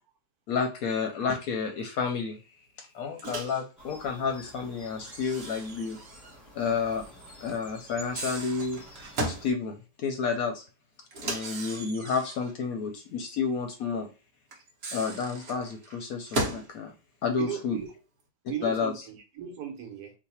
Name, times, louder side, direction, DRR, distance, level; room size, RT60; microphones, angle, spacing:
voice 1, 0.5-2.4 2.8-6.0 6.5-7.1 7.4-8.8 9.2-10.6 11.2-14.1 14.9-16.9 17.2-17.8 18.6-18.9, left 5 dB, 70° left, 4 dB, 0.9 m, -30 dB
Microwave oven, 3.2-3.6 5.0-6.4 6.7-6.8 7.9-9.5 11.1-12.5 14.5-16.7, right 1 dB, 45° right, 0.9 m, -36 dB
sound 1, 3.8-9.5, equal, 15° left, 0.8 m, -50 dB
voice 2, 17.4-17.9 18.5-20.1, right 9 dB, 65° right, 3 dB, 1.2 m, -37 dB
3.1 x 2.1 x 4.1 m, 0.33 s
omnidirectional pair, 1.8 m